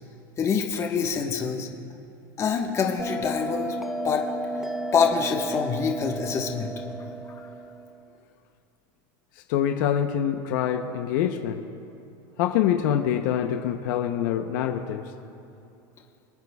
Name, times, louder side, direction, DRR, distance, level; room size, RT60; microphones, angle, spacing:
voice 1, 0.4-1.7 2.4-3.7 4.0-4.2 4.9-6.7, left 6 dB, 25° left, 1 dB, 1.3 m, -25 dB
Bell, 3.0-8.1, right 1 dB, ahead, 0.6 m, -33 dB
voice 2, 9.5-11.7 12.4-15.0, left 10 dB, 65° left, 5 dB, 0.8 m, -25 dB
27.0 x 9.4 x 2.3 m, 2.8 s
supercardioid pair, 135°, 11 cm